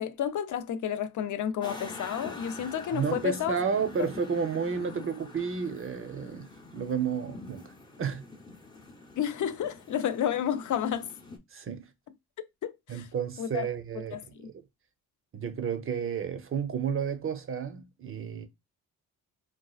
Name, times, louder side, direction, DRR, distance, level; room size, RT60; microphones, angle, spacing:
voice 1, 0.0-3.5 4.0-4.1 9.2-11.1 12.6-13.0 13.4-13.7 14.1-14.5, left 9 dB, 55° left, 0.5 m, -31 dB
sound 1, 1.6-11.4, left 3 dB, 10° left, 0.7 m, -46 dB
voice 2, 2.9-7.7 8.0-8.2 11.5-11.9 12.9-14.6 15.3-18.5, right 6 dB, 35° right, 0.7 m, -32 dB
4.2 x 2.4 x 2.3 m
cardioid pair, 85°, 37 cm